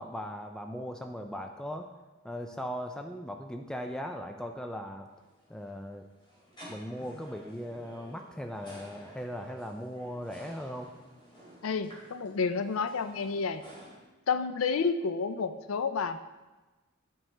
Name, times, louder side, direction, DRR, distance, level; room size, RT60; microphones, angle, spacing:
voice 1, 0.0-1.9 2.2-5.1 5.5-6.1 6.7-10.9, equal, 5° left, 4 dB, 0.3 m, -38 dB
sound 1, 5.1-13.9, equal, 25° left, 2.7 m, -52 dB
voice 2, 11.6-13.6 14.3-16.2, left 5 dB, 80° left, 10 dB, 0.5 m, -30 dB
9.0 x 6.1 x 3.3 m, 1.2 s
head